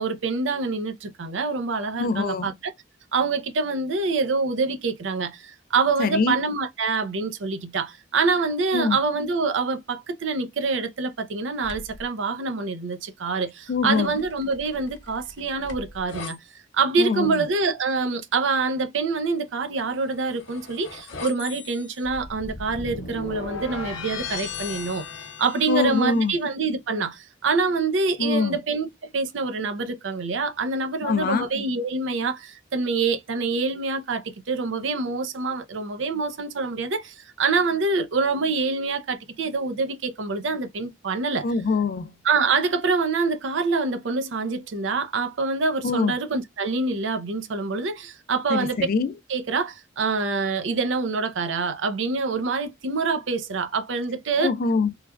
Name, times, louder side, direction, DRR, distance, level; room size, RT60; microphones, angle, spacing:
voice 1, 0.0-2.7 3.1-16.4 16.7-25.0 25.4-41.5 42.2-48.9 49.3-54.5, right 4 dB, 75° right, 0.5 m, -26 dB
voice 2, 2.0-2.5 6.0-6.4 8.7-9.0 13.7-14.2 17.0-17.5 25.7-26.4 28.2-28.6 31.0-31.5 41.4-42.2 45.8-46.2 48.5-49.1 54.4-54.9, left 4 dB, 50° left, 0.3 m, -24 dB
sound 1, 11.6-12.1 13.9-16.3 19.8-26.2, left 5 dB, 75° left, 0.7 m, -37 dB
3.2 x 2.2 x 2.2 m
head